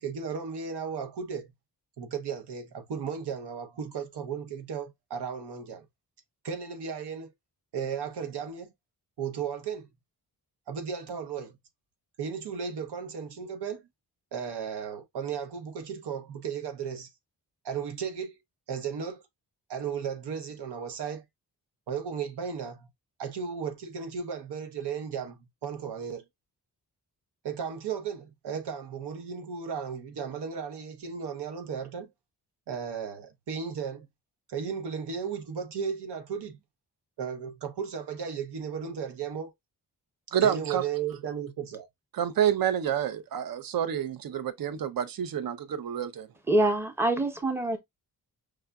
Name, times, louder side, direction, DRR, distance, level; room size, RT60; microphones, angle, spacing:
voice 1, 0.0-1.5 2.0-5.9 6.4-7.3 7.7-8.7 9.2-9.9 10.7-11.6 12.2-13.8 14.3-17.1 17.6-18.4 18.7-19.2 19.7-21.2 21.9-22.9 23.2-26.3 27.4-32.1 32.7-34.1 34.5-36.6 37.2-39.5 40.4-41.9, right 6 dB, 85° right, 0.9 m, -35 dB
voice 2, 40.3-40.8 42.1-46.3, right 9 dB, 60° right, 0.6 m, -28 dB
voice 3, 46.5-47.8, right 1 dB, 5° right, 0.7 m, -25 dB
4.8 x 2.5 x 2.2 m
wide cardioid pair, 100°, 39 cm